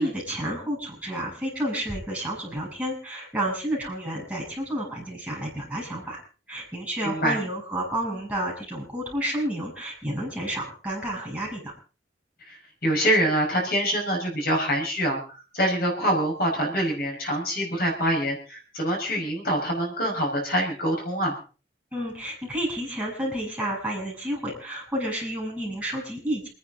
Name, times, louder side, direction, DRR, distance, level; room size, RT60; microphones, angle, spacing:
voice 1, 0.0-6.2 6.5-11.7 21.9-26.5, right 1 dB, 5° right, -4 dB, 7.8 m, -30 dB
voice 2, 7.0-7.4 12.4-21.4, equal, 55° left, 0 dB, 5.0 m, -25 dB
28.5 x 10.5 x 3.8 m, 0.37 s
head